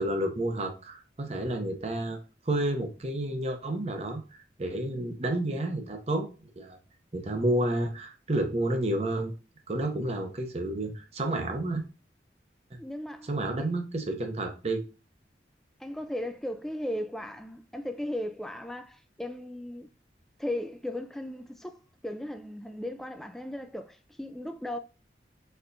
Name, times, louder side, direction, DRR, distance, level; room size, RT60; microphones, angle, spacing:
voice 1, 0.0-2.2 2.5-6.3 6.6-6.8 7.1-9.3 9.7-11.8 13.3-14.8, right 1 dB, 35° right, 0.7 m, -30 dB
voice 2, 12.8-13.3 15.8-19.9 20.4-24.8, left 1 dB, ahead, 0.3 m, -36 dB
4.3 x 3.3 x 2.6 m
head